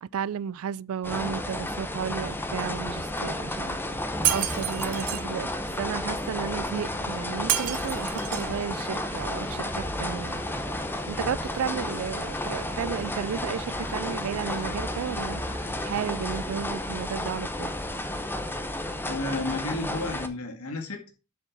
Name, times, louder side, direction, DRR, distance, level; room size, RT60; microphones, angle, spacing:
voice 1, 0.0-3.8 4.3-10.4 11.1-15.4 15.8-17.7, right 8 dB, 65° right, 0.3 m, -33 dB
sound 1, 1.0-20.3, left 1 dB, 10° left, 0.8 m, -32 dB
Shatter, 4.2-5.2 7.5-8.5, right 13 dB, 90° right, 0.8 m, -28 dB
sound 2, 6.4-16.4, left 3 dB, 65° left, 1.0 m, -47 dB
voice 2, 19.0-21.1, left 2 dB, 80° left, 2.1 m, -32 dB
7.6 x 5.0 x 6.1 m
head